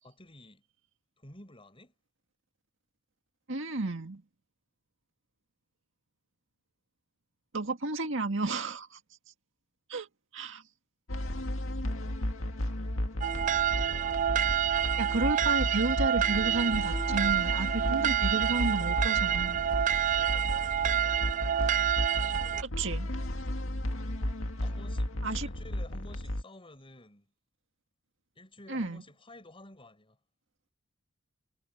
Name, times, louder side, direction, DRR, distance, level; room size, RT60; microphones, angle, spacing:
voice 1, 0.0-0.6 1.2-1.9 13.7-14.6 20.1-21.9 24.6-25.1 25.4-27.3 28.3-30.2, left 1 dB, 25° left, 6.3 m, -53 dB
voice 2, 3.5-4.2 7.5-9.0 9.9-10.1 10.3-10.6 15.0-19.6 22.6-23.1 25.2-25.5 28.7-29.0, right 2 dB, 65° right, 2.0 m, -32 dB
sound 1, 11.1-26.4, left 1 dB, 70° left, 2.1 m, -34 dB
sound 2, 13.2-22.6, right 10 dB, 40° right, 0.4 m, -28 dB
head